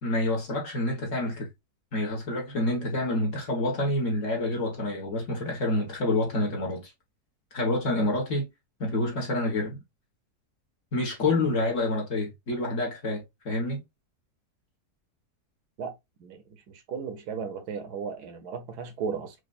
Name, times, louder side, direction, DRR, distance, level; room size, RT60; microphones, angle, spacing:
voice 1, 0.0-1.5 1.9-6.9 7.5-8.5 8.8-9.8 10.9-13.8, left 2 dB, 50° left, 1.6 m, -28 dB
voice 2, 16.2-19.3, right 6 dB, 75° right, 1.3 m, -35 dB
4.9 x 2.6 x 2.4 m
omnidirectional pair, 1.7 m